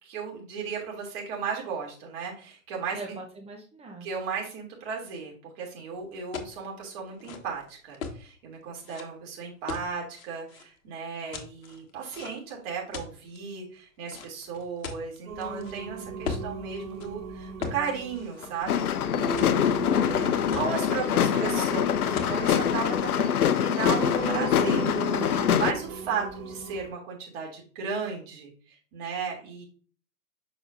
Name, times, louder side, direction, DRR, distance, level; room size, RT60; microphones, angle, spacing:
voice 1, 0.0-3.0 4.0-18.9 19.2-19.6 19.9-20.2 20.5-24.9 25.2-28.5 28.9-29.6, right 6 dB, 45° right, -1 dB, 2.9 m, -35 dB
voice 2, 2.9-4.1 19.8-21.7, right 2 dB, 15° right, 2 dB, 0.8 m, -41 dB
sound 1, 6.3-6.6 7.1-8.2 8.8-9.0 9.7-10.6 11.3-12.5 12.9-13.4 14.1-15.7 16.2-16.5 16.9-17.1 17.6-17.8 18.1-19.0 19.4-19.9 20.2-20.3 20.5-21.1 22.2-22.4 22.7-23.2, left 5 dB, 65° left, 1.4 m, -38 dB
Singing, 15.3-26.9, right 5 dB, 70° right, 2.3 m, -38 dB
sound 2, 18.7-25.7, left 9 dB, 85° left, 0.6 m, -24 dB
7.0 x 5.9 x 2.6 m, 0.41 s
hypercardioid pair, 115°, 43 cm